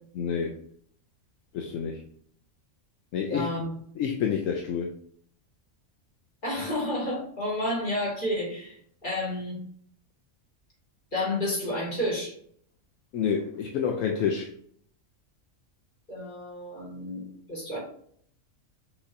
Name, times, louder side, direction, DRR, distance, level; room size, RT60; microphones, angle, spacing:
voice 1, 0.2-0.5 1.5-2.0 3.1-3.5 4.0-4.9 13.1-14.5, left 7 dB, 75° left, 0.9 m, -28 dB
voice 2, 3.3-3.7 6.4-8.8 9.0-9.6 11.1-12.3 16.1-17.8, left 1 dB, 35° left, 2.1 m, -30 dB
6.0 x 3.2 x 2.6 m
omnidirectional pair, 1.4 m